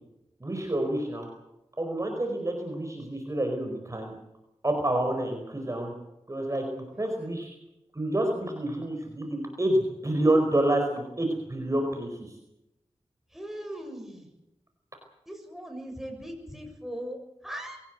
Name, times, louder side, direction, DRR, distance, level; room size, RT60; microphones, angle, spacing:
voice 1, 0.4-1.3 1.8-4.1 4.6-5.9 6.3-7.5 7.9-12.3, right 1 dB, 30° right, 3 dB, 4.8 m, -28 dB
voice 2, 6.9-7.5 13.3-14.3 15.3-17.8, equal, 5° right, 3 dB, 7.1 m, -40 dB
22.5 x 18.0 x 8.1 m, 0.87 s
wide cardioid pair, 80°, 11 cm